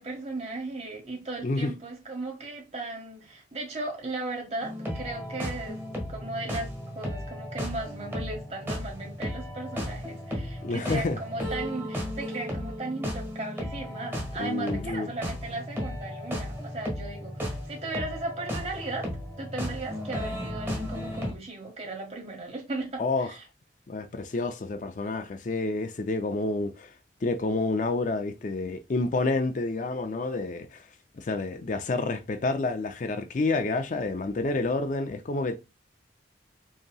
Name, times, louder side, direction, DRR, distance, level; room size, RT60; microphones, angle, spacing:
voice 1, 0.0-19.1 19.4-23.4, right 2 dB, 35° right, 1.5 m, -36 dB
sound 1, 4.6-21.3, equal, 10° right, 1.3 m, -35 dB
voice 2, 10.6-11.2 14.4-15.1 23.0-23.3 23.9-26.9 27.2-30.9 31.2-35.6, left 3 dB, 45° left, 0.4 m, -29 dB
5.3 x 2.9 x 2.3 m
head